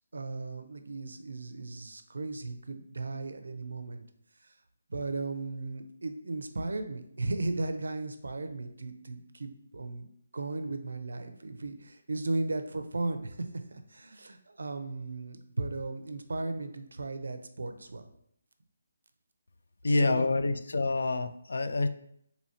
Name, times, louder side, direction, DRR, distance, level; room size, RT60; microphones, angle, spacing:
voice 1, 0.1-4.0 4.9-10.1 10.3-13.4 13.7-18.1 19.9-20.6, right 2 dB, 80° right, 8 dB, 0.5 m, -36 dB
voice 2, 19.8-21.9, left 3 dB, 65° left, 11 dB, 0.3 m, -27 dB
4.2 x 2.8 x 2.8 m, 0.71 s
hypercardioid pair, 180°, 0 cm